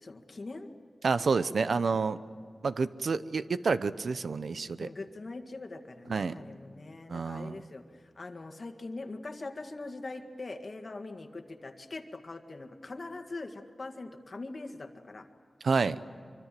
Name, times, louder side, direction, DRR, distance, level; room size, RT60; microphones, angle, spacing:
voice 1, 0.0-0.7 4.8-7.8 8.2-15.3, left 2 dB, 50° left, 6 dB, 1.8 m, -42 dB
voice 2, 1.0-2.2 2.6-4.9 6.1-6.4 7.1-7.6 15.6-16.0, right 4 dB, 85° right, 13 dB, 0.8 m, -29 dB
25.0 x 24.5 x 7.6 m, 2.2 s
wide cardioid pair, 95°, 0 cm